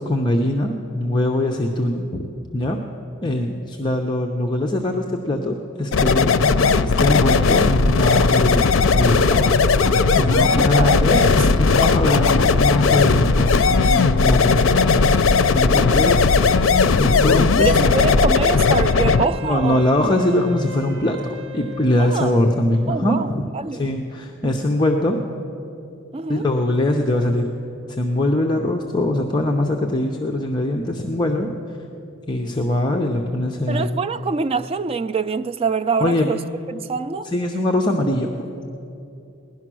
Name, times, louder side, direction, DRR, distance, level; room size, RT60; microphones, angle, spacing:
voice 1, 0.1-2.8 3.2-8.7 9.0-9.5 10.1-14.6 15.5-16.2 17.0-17.9 19.4-25.2 26.3-27.5 27.9-31.5 32.3-33.9 36.0-36.3 37.3-38.3, left 1 dB, 20° left, 0.7 m, -22 dB
sound 1, 5.9-19.3, left 4 dB, 75° left, 0.5 m, -17 dB
voice 2, 10.5-11.4 15.7-16.1 17.6-19.8 22.0-22.3 22.9-23.9 26.1-26.4 33.7-36.4 36.7-37.3, right 4 dB, 30° right, 0.3 m, -25 dB
Wind instrument woodwind instrument, 18.7-23.0, left 2 dB, 60° right, 0.8 m, -38 dB
17.0 x 11.0 x 6.2 m
head